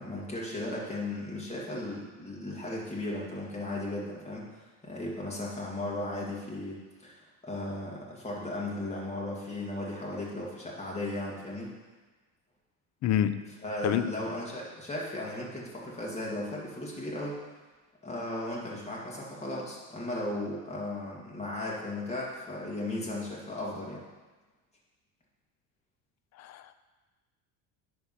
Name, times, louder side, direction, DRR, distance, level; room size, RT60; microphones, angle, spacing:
voice 1, 0.0-11.7 13.6-17.3 18.0-24.0, left 1 dB, 15° left, -4 dB, 2.0 m, -36 dB
voice 2, 13.0-13.5 13.8-14.1 26.4-26.7, left 10 dB, 45° left, 12 dB, 0.5 m, -27 dB
10.0 x 3.5 x 5.7 m, 1.3 s
cardioid pair, 125°, 41 cm